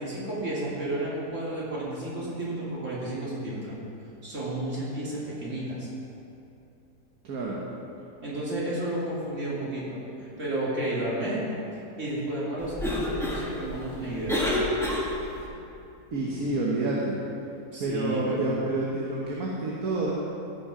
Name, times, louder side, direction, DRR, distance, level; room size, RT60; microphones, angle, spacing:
voice 1, 0.0-3.8 4.2-5.9 8.2-11.4 12.0-14.4 17.7-18.4, right 1 dB, 50° right, -7 dB, 3.0 m, -32 dB
voice 2, 7.2-7.6 16.1-17.2 17.8-20.1, right 2 dB, 65° right, -3 dB, 1.6 m, -28 dB
Cough, 12.6-15.5, left 1 dB, ahead, 1.5 m, -29 dB
15.0 x 6.5 x 4.9 m, 2.8 s
omnidirectional pair, 1.7 m